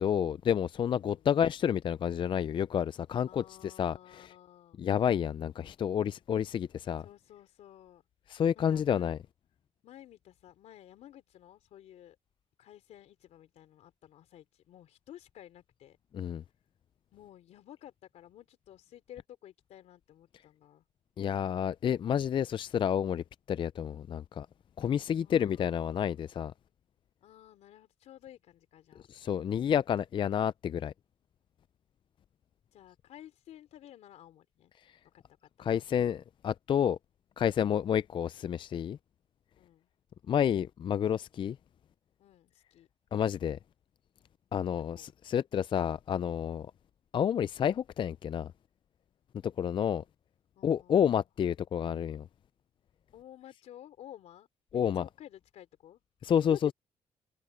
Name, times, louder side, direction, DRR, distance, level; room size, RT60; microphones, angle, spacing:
voice 1, 0.0-4.3 4.8-7.0 8.3-9.2 16.1-16.4 21.2-24.5 24.8-26.5 29.1-30.9 35.6-37.0 37.4-39.0 40.3-41.6 43.1-43.6 44.5-46.7 47.1-48.5 49.4-50.0 50.6-52.3 54.7-55.0 56.2-56.7, left 8 dB, 45° left, 0.4 m, -29 dB
voice 2, 0.9-1.3 3.2-4.8 7.0-8.0 8.5-9.1 9.8-12.2 12.6-16.0 17.1-20.8 25.1-26.3 27.2-29.1 32.7-34.7 35.1-35.8 39.6-39.9 42.2-42.9 44.9-45.1 50.5-51.2 53.1-56.6, left 12 dB, 80° left, 3.4 m, -53 dB
cardioid pair, 85°, 11 cm